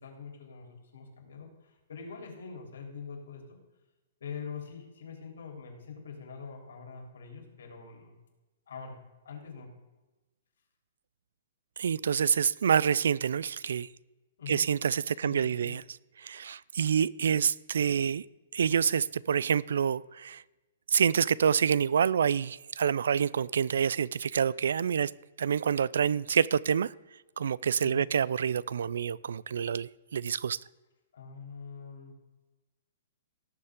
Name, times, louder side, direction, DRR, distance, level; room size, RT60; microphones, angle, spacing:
voice 1, 0.0-3.6 4.2-8.1 8.7-9.7 14.4-14.7 15.1-15.7 27.8-28.1 31.1-32.1, left 5 dB, 80° left, 3.4 m, -44 dB
voice 2, 11.8-13.9 14.5-15.8 16.2-18.2 18.5-20.4 20.9-25.1 25.4-26.9 27.4-30.6, right 7 dB, 75° right, 0.3 m, -27 dB
18.0 x 6.9 x 3.7 m
hypercardioid pair, 180°, 0 cm